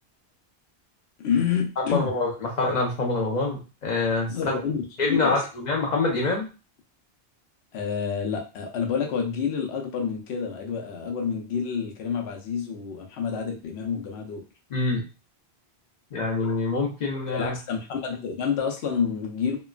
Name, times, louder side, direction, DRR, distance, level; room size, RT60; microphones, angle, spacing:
voice 1, 1.2-2.1 4.3-5.4 7.7-14.4 17.3-19.6, left 6 dB, 80° left, 1 dB, 0.9 m, -28 dB
voice 2, 1.9-4.6 5.0-6.5 14.7-15.0 16.1-17.5, left 3 dB, 45° left, 0 dB, 0.8 m, -26 dB
2.9 x 2.2 x 2.3 m, 0.32 s
omnidirectional pair, 1.1 m